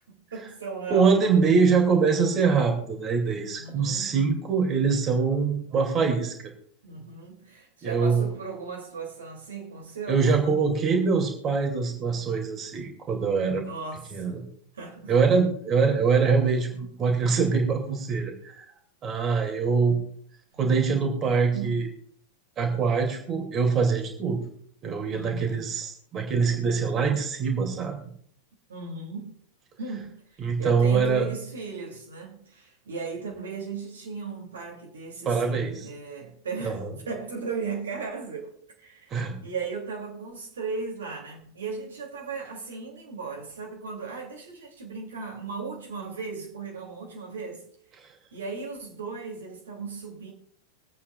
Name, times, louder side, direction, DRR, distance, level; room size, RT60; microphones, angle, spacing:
voice 1, 0.3-1.4 3.5-4.2 6.8-10.3 13.6-15.1 21.3-21.9 25.1-25.7 28.7-29.3 29.8-30.2 30.6-38.5 38.8-47.7 48.3-50.3, right 4 dB, 70° right, 2.7 m, -36 dB
voice 2, 0.9-6.3 7.8-8.2 10.1-13.6 14.1-14.4 15.1-18.7 19.0-20.0 20.6-21.9 22.6-24.4 24.8-28.0 30.4-31.3 35.3-35.9 36.6-36.9 39.1-39.4, right 5 dB, 30° right, 2.4 m, -24 dB
24.5 x 8.4 x 2.4 m
figure-of-eight pair, 90°, 0 cm